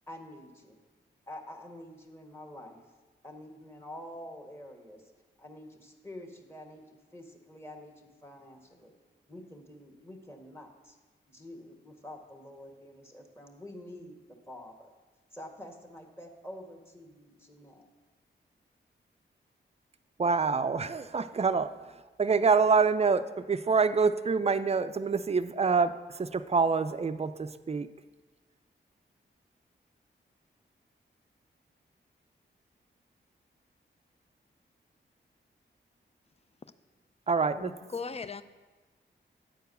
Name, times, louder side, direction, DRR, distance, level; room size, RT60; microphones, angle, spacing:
voice 1, 0.1-0.8 1.3-2.8 3.2-5.1 5.4-8.9 9.3-11.0 11.3-14.2 14.5-14.9 15.3-17.8, left 1 dB, 10° left, 1.5 m, -47 dB
voice 2, 20.2-27.9 37.3-37.7, right 5 dB, 30° right, 0.4 m, -26 dB
voice 3, 37.5-38.4, left 5 dB, 30° left, 0.5 m, -38 dB
9.1 x 4.6 x 6.7 m
cardioid pair, 50°, 21 cm